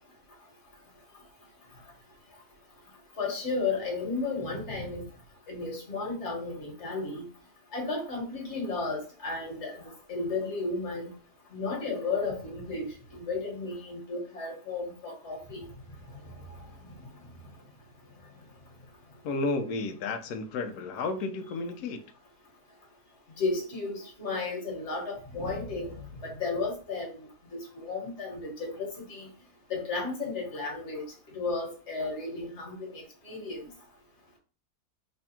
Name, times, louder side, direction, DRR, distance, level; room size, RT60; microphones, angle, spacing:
voice 1, 3.2-5.0 5.5-7.2 7.7-11.1 11.5-15.7 23.4-27.2 27.5-29.3 29.7-31.1 31.3-33.6, left 3 dB, 45° left, 1.6 m, -33 dB
voice 2, 19.2-22.0, left 3 dB, 75° left, 1.1 m, -32 dB
3.3 x 2.3 x 4.2 m
omnidirectional pair, 1.7 m